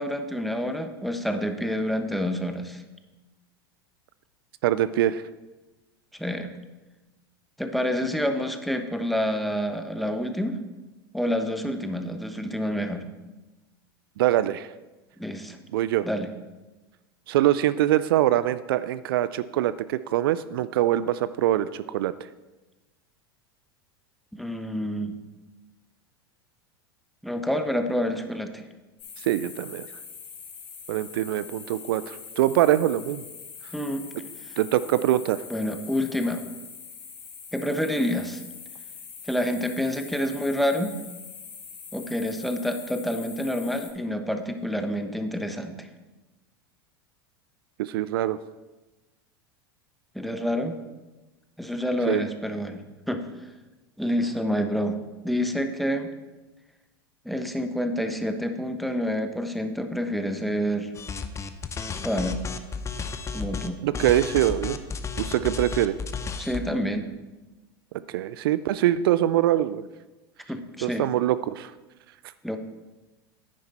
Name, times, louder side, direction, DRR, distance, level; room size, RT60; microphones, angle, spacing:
voice 1, 0.0-2.8 6.2-6.5 7.6-10.6 11.1-13.0 15.2-15.6 16.0-16.3 24.3-25.1 27.2-28.6 33.7-34.1 35.5-36.5 37.5-38.4 39.3-40.9 41.9-45.9 50.1-50.8 51.6-53.2 54.0-55.0 55.2-56.1 57.2-60.9 62.0-62.4 63.3-63.8 66.4-67.1 70.5-71.1 72.4-72.6, equal, ahead, 6 dB, 1.0 m, -28 dB
voice 2, 4.6-5.2 14.2-14.7 15.7-16.1 17.3-22.1 29.2-29.9 30.9-33.2 34.6-35.4 47.8-48.4 52.1-52.3 63.8-64.8 65.2-65.9 68.1-69.9 70.8-71.7, right 13 dB, 65° right, 15 dB, 0.4 m, -23 dB
sound 1, 29.0-43.9, left 6 dB, 40° left, 3.0 m, -43 dB
sound 2, 61.0-63.7 63.9-66.7, left 5 dB, 20° left, 0.8 m, -33 dB
9.9 x 9.4 x 4.2 m, 1.1 s
hypercardioid pair, 85°, 13 cm